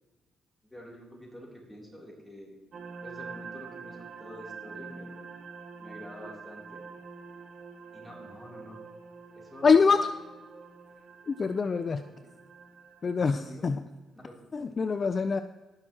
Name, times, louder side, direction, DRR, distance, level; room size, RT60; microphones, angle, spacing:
voice 1, 0.6-2.6 3.0-5.2 5.8-6.8 7.9-8.8 9.3-10.0 12.1-12.2 13.2-13.8 14.1-15.0, equal, 5° left, -3 dB, 3.0 m, -48 dB
sound 1, 2.7-13.5, right 5 dB, 60° right, 1.3 m, -46 dB
voice 2, 9.6-10.1 11.3-12.0 13.0-13.8 14.5-15.4, left 5 dB, 40° left, 11 dB, 0.3 m, -24 dB
17.0 x 6.2 x 2.9 m, 1.2 s
cardioid pair, 90°, 0 cm